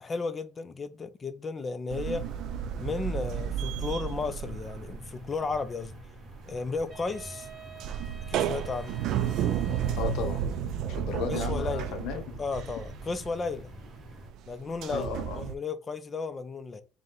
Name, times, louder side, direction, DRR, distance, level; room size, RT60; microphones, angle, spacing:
voice 1, 0.0-2.3 2.8-5.9 6.5-7.5 8.3-9.0 11.3-12.0 12.4-13.7 14.5-15.1 15.4-16.8, left 4 dB, 20° left, 0.4 m, -34 dB
sound 1, 1.9-5.7 5.9-15.6, right 9 dB, 55° right, 0.3 m, -32 dB
sound 2, 2.0-14.3, equal, ahead, 1.4 m, -48 dB
Wind instrument woodwind instrument, 6.9-10.8, right 5 dB, 35° right, 2.0 m, -49 dB
voice 2, 10.0-10.4 10.9-12.4 14.9-15.4, left 6 dB, 65° left, 0.7 m, -34 dB
5.1 x 2.2 x 3.7 m
cardioid pair, 170°, 0 cm